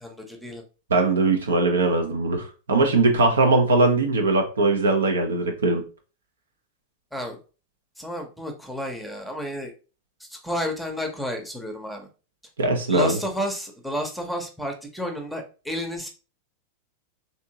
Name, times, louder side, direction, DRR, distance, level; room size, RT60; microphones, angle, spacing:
voice 1, 0.0-0.6 7.1-7.4 8.0-9.7 10.2-12.1 12.9-16.1, equal, ahead, 2 dB, 0.8 m, -31 dB
voice 2, 0.9-5.8 12.6-13.2, right 3 dB, 70° right, 4 dB, 0.7 m, -20 dB
3.5 x 2.8 x 2.8 m, 0.34 s
figure-of-eight pair, 90°, 0 cm